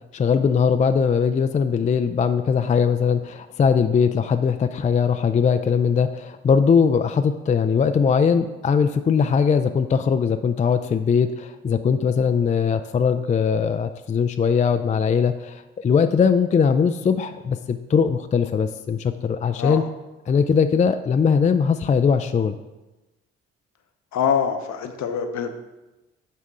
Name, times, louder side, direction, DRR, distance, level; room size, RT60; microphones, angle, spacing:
voice 1, 0.1-19.8 20.3-22.6, left 6 dB, 20° left, 8 dB, 0.3 m, -20 dB
voice 2, 24.1-25.6, left 7 dB, 55° left, 7 dB, 0.8 m, -24 dB
9.8 x 3.6 x 3.7 m, 1.1 s
hypercardioid pair, 45°, 34 cm